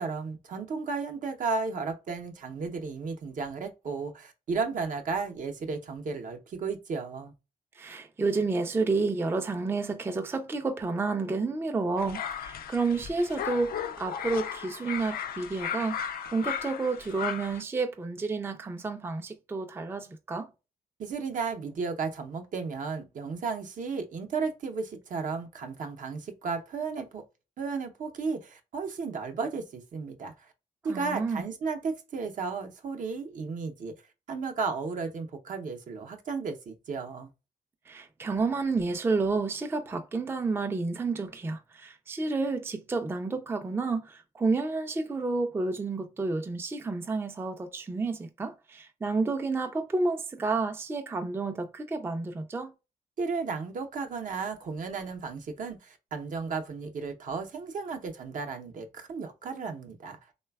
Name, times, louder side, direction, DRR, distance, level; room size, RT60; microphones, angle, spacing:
voice 1, 0.0-7.3 21.0-27.2 27.6-30.5 30.8-33.9 34.3-37.3 53.2-60.2, right 4 dB, 60° right, 0.6 m, -34 dB
voice 2, 7.8-16.0 16.3-20.5 30.8-31.5 37.9-52.7, right 3 dB, 15° right, 0.3 m, -30 dB
sound 1, 12.0-17.6, left 8 dB, 75° left, 0.4 m, -36 dB
3.2 x 2.1 x 2.2 m
cardioid pair, 90°, 15 cm